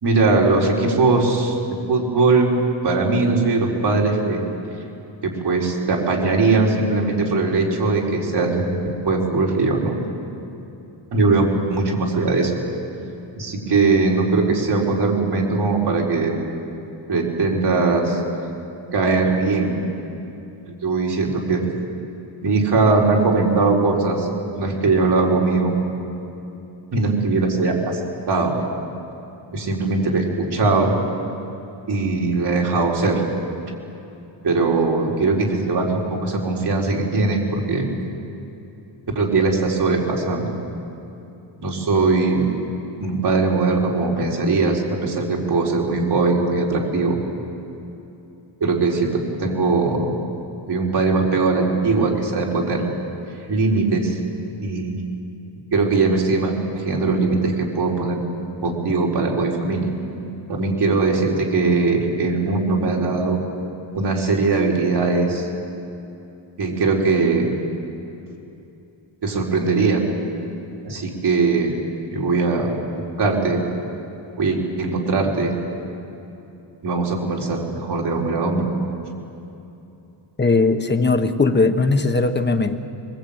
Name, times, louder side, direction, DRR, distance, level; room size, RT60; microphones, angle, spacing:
voice 1, 0.0-1.5 1.9-2.5 2.8-4.4 5.2-10.0 11.1-12.6 13.4-16.3 17.1-18.2 18.9-19.8 20.8-21.6 22.4-24.3 24.5-25.7 26.9-28.0 28.3-28.6 29.5-30.9 31.9-33.2 34.4-37.9 39.1-40.6 41.6-42.5 43.0-47.2 48.6-50.1 50.7-52.8 53.5-54.2 54.6-55.0 55.7-58.2 58.6-59.9 60.5-63.4 63.9-65.5 66.6-67.5 69.2-70.0 70.8-71.7 72.1-72.7 73.2-73.6 74.4-75.5 76.8-78.7, right 3 dB, 55° right, -2 dB, 4.7 m, -20 dB
voice 2, 80.4-82.7, left 3 dB, 20° left, 6 dB, 1.4 m, -18 dB
24.0 x 22.5 x 8.9 m, 2.8 s
wide cardioid pair, 125°, 47 cm